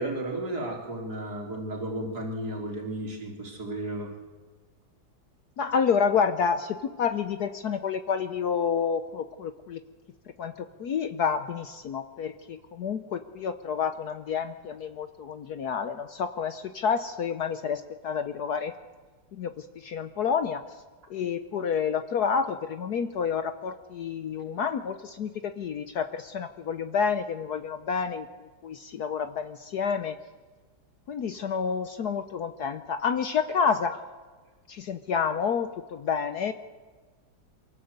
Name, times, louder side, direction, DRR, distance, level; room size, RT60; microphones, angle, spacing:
voice 1, 0.0-4.1, right 1 dB, 50° right, 0 dB, 4.0 m, -33 dB
voice 2, 5.6-9.8 10.4-18.7 19.3-20.6 21.1-28.3 28.6-30.2 31.1-34.0 34.7-36.5, left 6 dB, 60° left, 10 dB, 1.2 m, -29 dB
24.0 x 16.0 x 8.1 m, 1.4 s
omnidirectional pair, 2.1 m